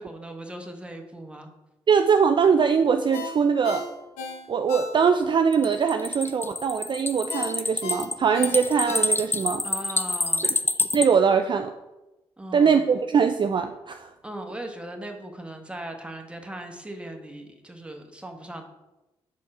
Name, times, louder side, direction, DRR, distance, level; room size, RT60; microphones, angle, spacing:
voice 1, 0.0-1.5 9.6-10.5 12.4-12.8 14.2-18.6, right 1 dB, 10° right, 3 dB, 1.3 m, -38 dB
voice 2, 1.9-3.9 4.5-9.7 10.9-11.7 12.5-14.1, right 6 dB, 40° right, 7 dB, 0.4 m, -22 dB
Ringtone, 3.1-5.4 5.8-5.9 7.3-9.5 9.9-10.0, left 3 dB, 85° left, 0.9 m, -36 dB
sound 1, 5.5-11.1, left 2 dB, 20° left, 0.5 m, -27 dB
6.3 x 4.2 x 4.8 m, 1.0 s
hypercardioid pair, 50°, 12 cm